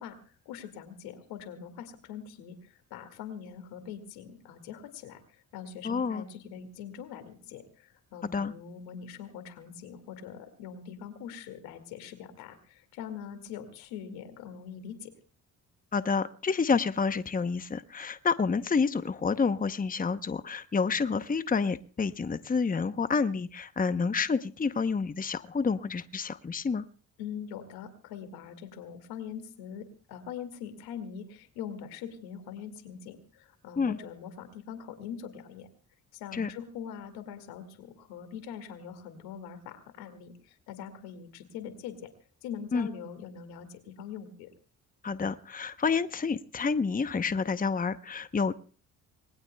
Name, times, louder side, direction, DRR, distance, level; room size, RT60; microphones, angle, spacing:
voice 1, 0.0-15.1 27.2-35.7 36.1-42.1 42.4-44.5, left 8 dB, 90° left, 9 dB, 2.2 m, -43 dB
voice 2, 5.8-6.2 8.2-8.5 15.9-26.8 33.8-34.0 36.3-36.5 42.7-42.9 45.0-48.5, left 5 dB, 25° left, 12 dB, 0.8 m, -29 dB
25.5 x 20.0 x 2.3 m, 0.40 s
supercardioid pair, 55°, 36 cm